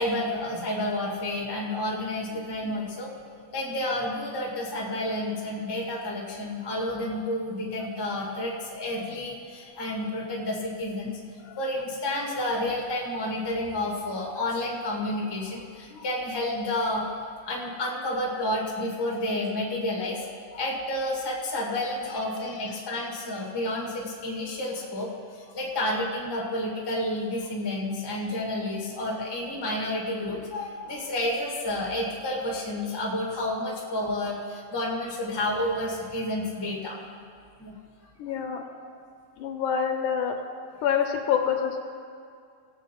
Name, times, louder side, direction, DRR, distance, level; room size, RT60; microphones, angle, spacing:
voice 1, 0.0-3.1 3.5-11.1 11.6-17.1 17.4-20.2 20.6-37.0 37.6-37.7, left 1 dB, 10° left, -3 dB, 1.2 m, -30 dB
voice 2, 38.2-38.6 39.4-40.4 40.8-41.8, left 8 dB, 75° left, 4 dB, 2.3 m, -26 dB
18.0 x 8.0 x 4.6 m, 2.3 s
omnidirectional pair, 3.7 m